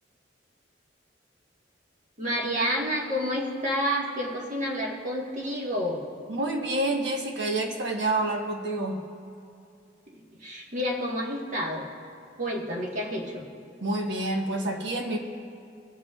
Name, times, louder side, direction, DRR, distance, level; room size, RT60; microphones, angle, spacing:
voice 1, 2.2-6.0 10.4-11.9 12.4-13.4, equal, 45° right, -2 dB, 1.5 m, -29 dB
voice 2, 6.3-9.0 13.8-15.2, right 2 dB, 70° right, 2 dB, 1.2 m, -28 dB
21.5 x 8.1 x 2.4 m, 2.5 s
head